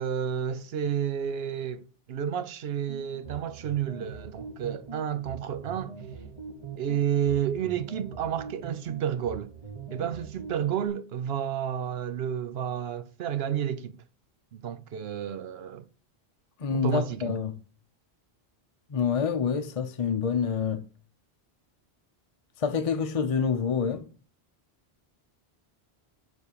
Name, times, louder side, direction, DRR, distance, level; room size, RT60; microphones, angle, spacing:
voice 1, 0.0-6.0 6.8-9.5 9.9-14.0 14.5-15.8 16.7-17.4, right 9 dB, 70° right, 0.9 m, -31 dB
sound 1, 2.9-10.9, right 6 dB, 30° right, 1.2 m, -42 dB
voice 2, 16.6-17.5 18.9-20.8 22.6-24.1, left 6 dB, 40° left, 0.6 m, -27 dB
7.0 x 4.4 x 6.7 m
omnidirectional pair, 1.1 m